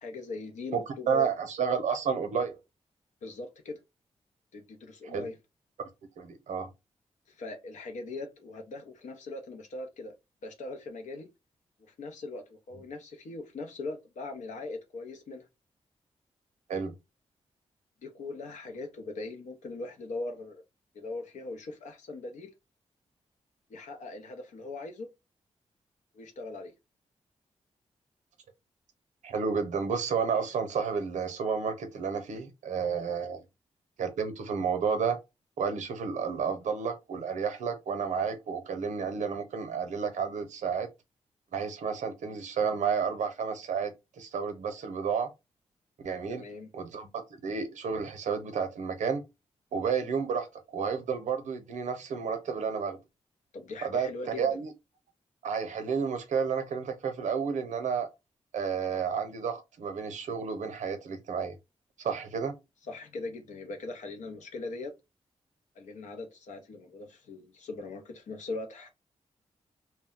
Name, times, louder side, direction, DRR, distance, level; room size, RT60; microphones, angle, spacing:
voice 1, 0.0-1.3 3.2-3.8 4.5-5.4 7.3-10.2 10.4-11.3 11.8-15.4 18.0-20.6 20.9-22.5 23.7-25.1 26.1-26.7 46.3-46.7 53.5-54.6 62.9-64.9 65.8-68.9, left 3 dB, 80° left, 0.7 m, -40 dB
voice 2, 0.7-2.6 5.0-5.3 6.2-6.7 16.7-16.9 29.2-33.4 34.0-35.2 35.6-40.9 41.5-45.3 46.0-46.4 46.7-49.2 49.7-53.0 53.8-54.1 54.4-54.7 55.4-58.1 58.5-61.6 62.0-62.6, right 6 dB, 85° right, 0.6 m, -31 dB
2.2 x 2.1 x 3.6 m
cardioid pair, 50°, 12 cm